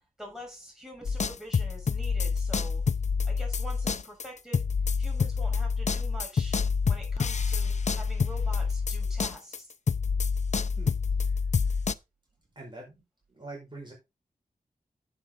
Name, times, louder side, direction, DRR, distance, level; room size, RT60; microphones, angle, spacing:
voice 1, 0.0-2.8 3.2-4.6 5.0-6.6 6.8-9.7, equal, 5° right, 6.8 m, -45 dB
sound 1, 1.0-9.6 9.9-11.9, left 5 dB, 55° left, 0.5 m, -27 dB
voice 2, 10.8-11.8 12.5-13.0 13.3-13.9, right 2 dB, 35° right, 4.9 m, -46 dB
9.8 x 8.0 x 3.8 m
wide cardioid pair, 85°, 14 cm